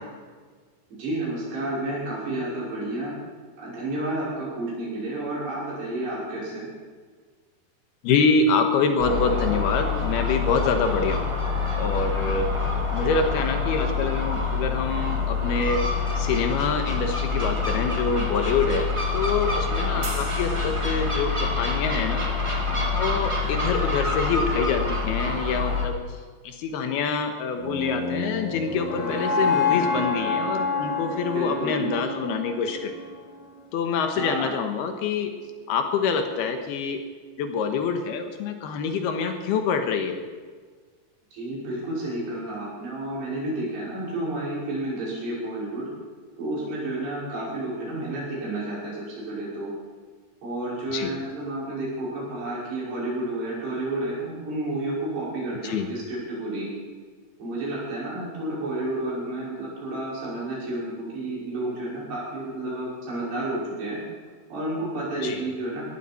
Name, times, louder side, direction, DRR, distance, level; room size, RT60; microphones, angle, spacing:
voice 1, 1.0-3.1 3.6-6.7 19.8-20.0 31.3-31.9 34.1-34.6 41.3-45.9 46.4-49.7 50.4-56.7 57.4-64.0 64.5-65.8, right 1 dB, 80° right, -6 dB, 7.9 m, -31 dB
voice 2, 8.0-11.3 11.8-12.5 12.9-15.8 16.2-22.2 22.9-26.0 26.4-32.9 33.7-35.3 35.7-37.0 37.4-40.2 47.4-47.5 50.9-51.1 55.6-55.9 65.2-65.4, left 5 dB, 75° left, 6 dB, 3.1 m, -26 dB
Gull seagull, 9.0-25.9, left 4 dB, 35° right, 0.4 m, -26 dB
sound 1, 20.0-21.6, right 4 dB, 55° right, 3.6 m, -41 dB
sound 2, 27.6-33.7, left 4 dB, 60° left, 0.6 m, -28 dB
19.0 x 14.0 x 4.4 m, 1.5 s
omnidirectional pair, 4.7 m